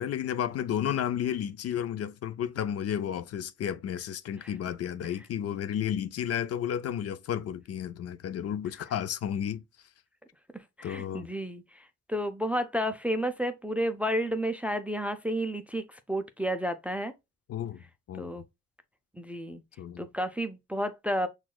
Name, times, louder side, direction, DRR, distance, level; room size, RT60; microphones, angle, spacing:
voice 1, 0.0-9.6 10.8-11.3 17.5-17.8 18.1-18.3 19.8-20.1, left 9 dB, 55° left, 0.4 m, -32 dB
voice 2, 10.8-17.1 18.2-18.4 19.2-19.6 20.0-21.3, equal, 5° right, 0.4 m, -31 dB
6.0 x 2.4 x 2.2 m
cardioid pair, 90°, 30 cm